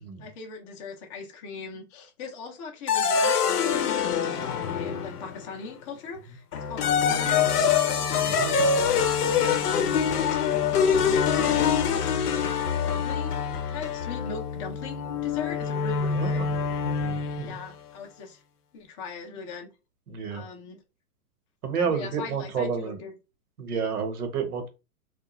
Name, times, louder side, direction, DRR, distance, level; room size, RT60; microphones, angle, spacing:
voice 1, 0.2-3.9 4.4-7.5 8.0-8.7 9.1-10.1 11.3-12.0 12.3-16.5 17.4-18.4 18.7-19.7 20.3-20.8 21.9-23.1, left 4 dB, 25° left, 2 dB, 0.4 m, -40 dB
sound 1, 2.9-5.4 6.5-17.6, left 6 dB, 85° left, 0.6 m, -25 dB
voice 2, 8.3-8.6 16.1-16.6 16.9-17.6 20.1-20.4 21.6-23.0 23.6-24.7, right 6 dB, 75° right, 5 dB, 1.2 m, -30 dB
2.3 x 2.2 x 2.9 m, 0.28 s
hypercardioid pair, 130°, 45 cm